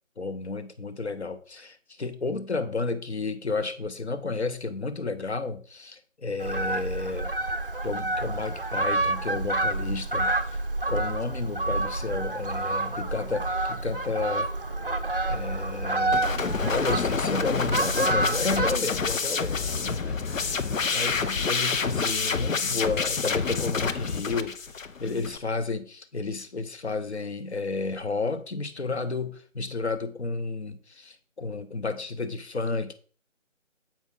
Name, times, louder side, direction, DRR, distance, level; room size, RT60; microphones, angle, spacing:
voice 1, 0.2-7.3 7.8-10.3 10.9-14.5 15.3-24.6 25.0-32.9, left 3 dB, 55° left, 0.8 m, -32 dB
Fowl, 6.4-18.8, right 2 dB, 45° right, 0.5 m, -28 dB
sound 1, 12.4-24.1, left 1 dB, 15° left, 1.1 m, -51 dB
sound 2, 16.1-25.4, left 5 dB, 85° left, 0.7 m, -28 dB
7.4 x 5.1 x 3.7 m
figure-of-eight pair, 165°, 38 cm